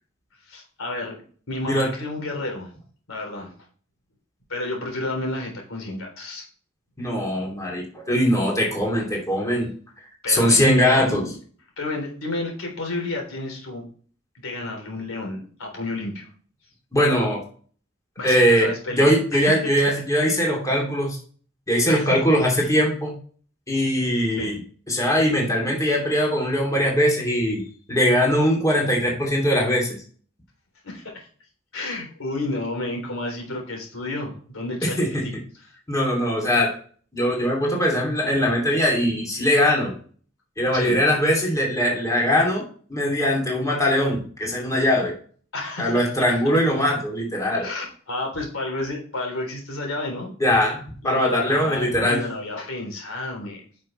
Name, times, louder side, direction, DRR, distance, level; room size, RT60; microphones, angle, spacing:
voice 1, 0.5-2.7 3.1-3.5 4.5-6.4 10.2-11.3 11.8-13.8 14.3-16.3 18.2-19.2 19.5-19.6 21.9-22.1 22.6-22.7 24.4-24.5 30.8-31.3 31.7-35.3 40.7-41.0 45.5-46.0 47.6-50.3 51.0-53.6, left 2 dB, 85° left, 1 dB, 3.6 m, -31 dB
voice 2, 7.0-9.7 10.3-11.2 16.9-17.4 18.2-18.7 19.0-21.2 21.7-23.1 23.7-24.6 24.9-27.6 27.9-30.0 34.8-35.2 35.9-36.7 37.1-39.9 40.6-42.6 42.9-45.1 45.8-47.7 50.4-52.2, equal, 15° left, -2 dB, 3.0 m, -21 dB
10.5 x 6.2 x 3.3 m, 0.43 s
head